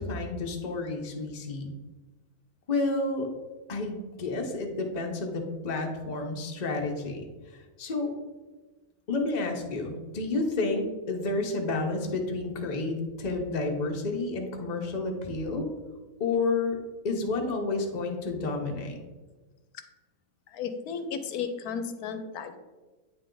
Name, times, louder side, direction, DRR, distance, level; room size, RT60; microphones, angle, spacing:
voice 1, 0.0-1.7 2.7-3.3 3.7-7.2 7.5-8.1 9.1-15.7 16.2-16.8 17.0-19.0, left 3 dB, 35° left, 2 dB, 0.8 m, -30 dB
voice 2, 20.5-22.6, left 6 dB, 85° left, 8 dB, 1.1 m, -34 dB
8.8 x 3.4 x 3.8 m, 1.3 s
omnidirectional pair, 1.6 m